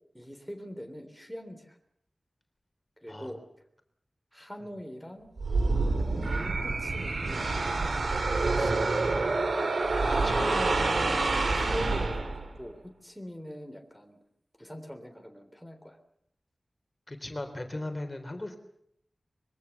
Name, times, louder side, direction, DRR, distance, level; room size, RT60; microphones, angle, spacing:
voice 1, 0.1-1.8 3.0-3.4 4.3-5.3 6.0-7.6 8.2-9.0 10.1-11.3 11.6-14.2 14.6-16.0, equal, ahead, 5 dB, 3.5 m, -42 dB
sound 1, 5.4-12.6, right 3 dB, 75° right, 2.6 m, -27 dB
voice 2, 9.8-10.5 17.1-18.6, left 1 dB, 30° left, 6 dB, 3.7 m, -38 dB
25.0 x 22.5 x 7.2 m, 0.72 s
wide cardioid pair, 80°, 0 cm